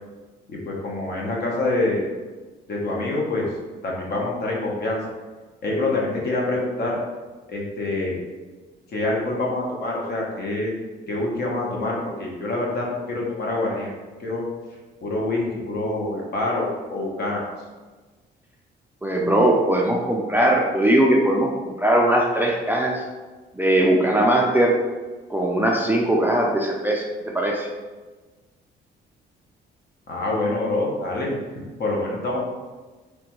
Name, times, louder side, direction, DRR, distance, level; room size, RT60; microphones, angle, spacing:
voice 1, 0.5-2.1 2.7-3.5 3.8-5.0 5.6-7.0 7.5-8.2 8.9-10.7 11.1-13.9 14.2-14.4 15.0-17.4 30.1-31.4 31.8-32.4, left 2 dB, 55° left, -3 dB, 0.9 m, -26 dB
voice 2, 19.0-23.0 23.6-24.7 25.3-27.7, right 1 dB, 10° right, -1 dB, 0.4 m, -20 dB
3.2 x 2.2 x 3.0 m, 1.3 s
cardioid pair, 90°, 20 cm